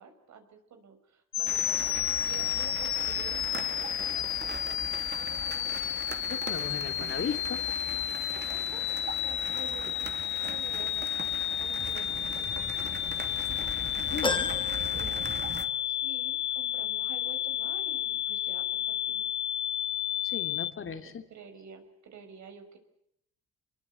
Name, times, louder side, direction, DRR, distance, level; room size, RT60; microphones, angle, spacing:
voice 1, 0.0-2.0 2.2-5.6 8.5-13.6 14.9-15.5 15.8-19.4 20.8-22.8, right 6 dB, 65° right, 6 dB, 5.4 m, -50 dB
sound 1, 1.3-20.7, left 12 dB, 65° left, 1.1 m, -31 dB
sound 2, 1.5-15.7, right 4 dB, 35° right, 2.5 m, -40 dB
voice 2, 6.3-7.6 14.1-14.5 20.2-21.2, left 6 dB, 45° left, 7 dB, 2.8 m, -36 dB
sound 3, 14.2-15.9 16.3-16.4 17.6-17.7, left 3 dB, 15° left, 2.3 m, -34 dB
27.0 x 22.0 x 8.3 m, 0.73 s
cardioid pair, 90°, 30 cm